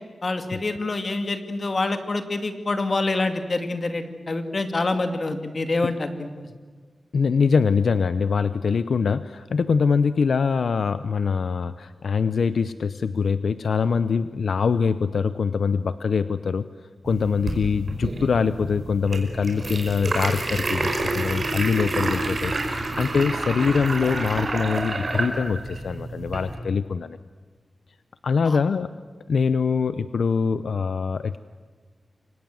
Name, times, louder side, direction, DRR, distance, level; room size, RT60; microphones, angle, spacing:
voice 1, 0.2-6.3 17.5-17.6 28.4-28.6, left 2 dB, 35° left, 7 dB, 2.3 m, -26 dB
voice 2, 7.1-16.7 17.0-27.2 28.2-28.9 29.3-31.4, left 5 dB, 70° left, 13 dB, 0.8 m, -23 dB
sound 1, 17.1-26.6, right 2 dB, 35° right, 4.9 m, -29 dB
29.0 x 25.0 x 7.7 m, 1.5 s
wide cardioid pair, 160°, 0 cm